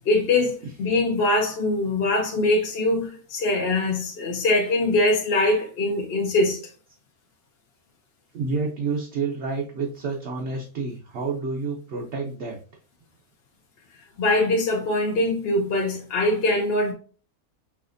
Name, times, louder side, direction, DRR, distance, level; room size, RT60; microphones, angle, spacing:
voice 1, 0.1-6.6 14.2-16.9, left 2 dB, 55° left, 0.7 m, -22 dB
voice 2, 8.3-12.6, right 4 dB, 55° right, 0.9 m, -29 dB
5.6 x 3.0 x 2.5 m
omnidirectional pair, 1.5 m